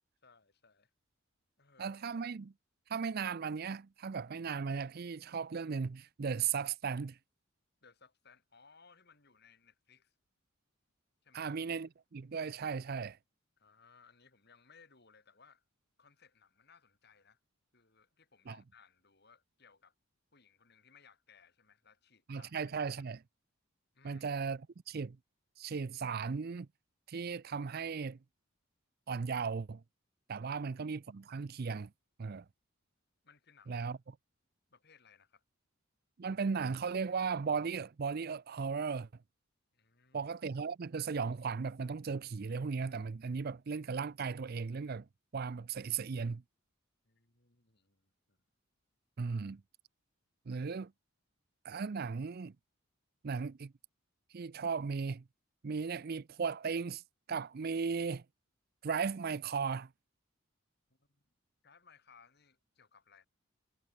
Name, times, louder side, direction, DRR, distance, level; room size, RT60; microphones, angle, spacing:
voice 1, 0.2-0.9 1.6-2.0 7.8-10.1 11.2-11.5 13.6-15.6 16.0-17.4 17.7-19.9 20.3-22.5 23.9-24.2 30.4-30.5 33.2-34.0 34.7-35.4 39.7-40.3 47.0-48.4 60.9-61.3 61.6-63.3, left 5 dB, 50° left, 3.5 m, -63 dB
voice 2, 1.8-2.5 2.9-7.2 11.3-13.2 18.5-18.6 22.3-23.2 24.0-25.2 25.6-26.7 27.1-28.2 29.1-29.8 30.3-31.9 32.2-32.5 33.7-34.0 36.2-39.1 40.1-45.1 45.3-46.4 49.2-49.6 50.5-50.9 51.6-52.5 53.2-53.7 54.3-55.2 55.6-57.0 57.3-58.2 58.8-59.9, right 5 dB, 45° right, 0.5 m, -36 dB
head